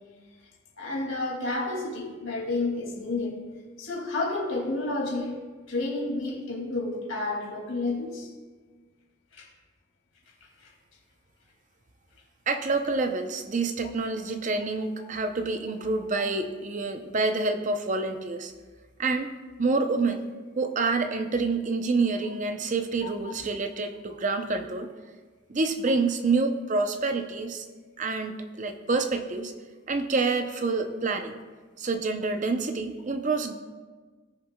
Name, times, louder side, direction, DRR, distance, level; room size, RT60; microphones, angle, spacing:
voice 1, 0.8-3.4 3.8-5.4 5.7-8.3 9.3-9.5 10.6-10.7 23.0-23.3, left 2 dB, 70° left, 0 dB, 2.3 m, -30 dB
voice 2, 12.5-18.5 19.0-19.3 19.6-20.3 20.6-24.9 25.5-27.7 28.0-29.5 29.9-31.4 31.8-33.5, right 3 dB, 35° right, 7 dB, 0.5 m, -27 dB
18.0 x 6.6 x 2.2 m, 1.4 s
head